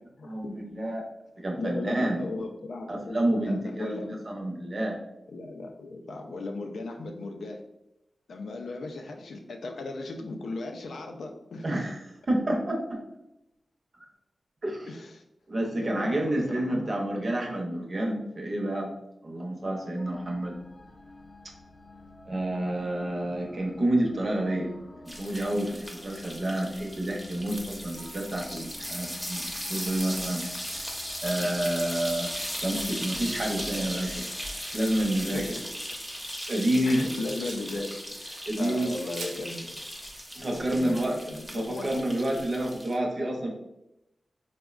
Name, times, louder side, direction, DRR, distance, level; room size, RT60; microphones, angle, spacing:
voice 1, 0.2-1.0 1.4-2.2 2.9-5.0 11.6-12.0 12.3-13.0 14.6-14.9 15.5-18.9 19.2-20.6 22.3-24.7 25.0-30.4 31.2-32.3 32.6-34.2 34.7-35.5 36.5-37.0 38.5-38.9 40.3-41.2 41.5-43.5, right 1 dB, 45° right, 0 dB, 0.6 m, -29 dB
voice 2, 1.6-4.2 5.3-7.6 8.3-11.6 14.9-15.2 15.7-17.0 35.3-35.4 36.8-37.9 38.2-39.8 40.5-41.9, left 2 dB, 85° left, 3 dB, 0.3 m, -37 dB
sound 1, 20.0-36.2, left 1 dB, 50° left, 0.6 m, -51 dB
sound 2, 25.1-43.0, equal, 5° left, 0.6 m, -37 dB
Domestic sounds home sounds, 34.0-40.4, right 3 dB, 90° right, 0.4 m, -49 dB
3.6 x 2.1 x 2.3 m, 0.88 s
wide cardioid pair, 75°, 0 cm